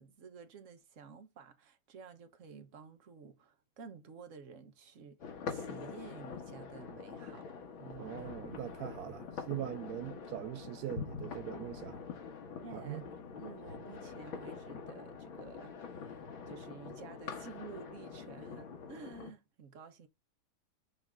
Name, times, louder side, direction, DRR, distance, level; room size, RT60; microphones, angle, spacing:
voice 1, 0.0-7.5 7.8-8.1 12.6-13.0 13.4-20.1, right 5 dB, 45° right, 1.2 m, -52 dB
sound 1, 5.2-19.3, left 5 dB, 85° left, 2.3 m, -45 dB
voice 2, 8.0-12.0 12.7-13.0, right 13 dB, 80° right, 0.8 m, -41 dB
6.5 x 3.6 x 6.1 m
omnidirectional pair, 2.1 m